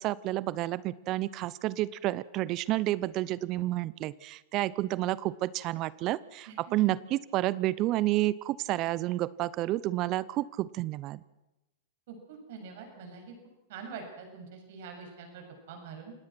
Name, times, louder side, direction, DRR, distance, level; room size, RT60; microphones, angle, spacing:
voice 1, 0.0-11.2, right 16 dB, 45° right, 20 dB, 0.7 m, -30 dB
voice 2, 6.5-6.9 12.1-13.3 13.7-16.1, right 5 dB, 65° right, 4 dB, 7.6 m, -45 dB
28.0 x 18.5 x 6.1 m, 0.98 s
hypercardioid pair, 115°, 0 cm